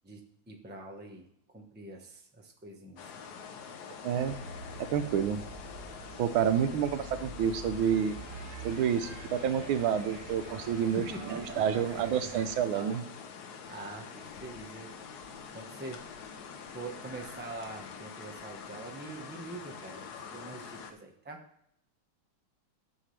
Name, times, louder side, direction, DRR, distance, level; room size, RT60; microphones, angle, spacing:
voice 1, 0.0-1.2 1.5-3.0 11.0-11.6 12.7-13.0 13.6-14.9 15.5-16.0 16.7-21.4, right 2 dB, 10° right, 2 dB, 0.7 m, -44 dB
sound 1, 3.0-20.9, left 6 dB, 60° left, 1.2 m, -46 dB
voice 2, 4.0-4.4 4.9-5.4 6.2-8.2 8.6-13.0, right 8 dB, 85° right, 10 dB, 1.5 m, -29 dB
sound 2, 4.2-12.6, right 3 dB, 70° right, 2.0 m, -46 dB
11.0 x 7.3 x 3.3 m, 0.70 s
omnidirectional pair, 2.2 m